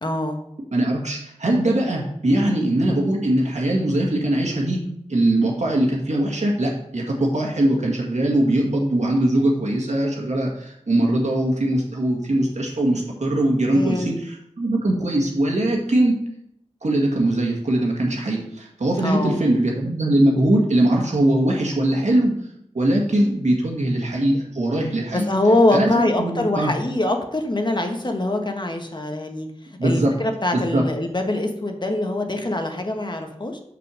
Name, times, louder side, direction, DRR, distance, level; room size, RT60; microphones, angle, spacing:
voice 1, 0.0-0.4 13.7-14.1 19.0-19.4 25.1-29.5 29.8-33.6, left 1 dB, 40° left, 4 dB, 1.3 m, -23 dB
voice 2, 0.7-16.1 16.8-22.3 22.7-25.3 25.7-26.7 29.8-30.1 30.5-30.8, right 1 dB, 75° right, -1 dB, 1.9 m, -21 dB
6.1 x 6.0 x 6.4 m, 0.75 s
wide cardioid pair, 60°, 12 cm